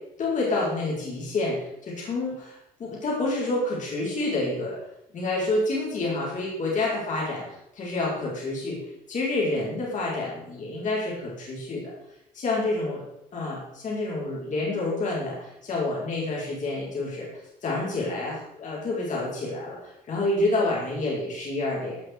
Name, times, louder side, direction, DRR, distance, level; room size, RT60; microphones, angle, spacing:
voice 1, 0.2-4.8 5.1-8.8 9.1-11.9 12.3-13.0 13.3-17.3 17.6-22.0, left 2 dB, 45° left, -5 dB, 5.0 m, -28 dB
17.0 x 6.3 x 4.8 m, 0.81 s
cardioid pair, 110°, 17 cm